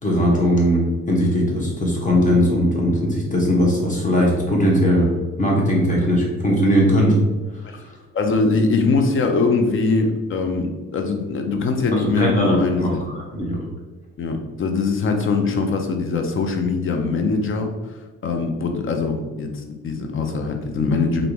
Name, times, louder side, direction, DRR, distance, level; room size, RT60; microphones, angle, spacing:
voice 1, 0.0-5.1 5.4-7.2 11.9-13.6, equal, 25° left, -2 dB, 1.1 m, -19 dB
voice 2, 8.1-13.2 14.2-17.7 18.2-21.3, left 4 dB, 45° left, 4 dB, 0.6 m, -22 dB
3.3 x 2.6 x 3.0 m, 1.2 s
cardioid pair, 90°, 30 cm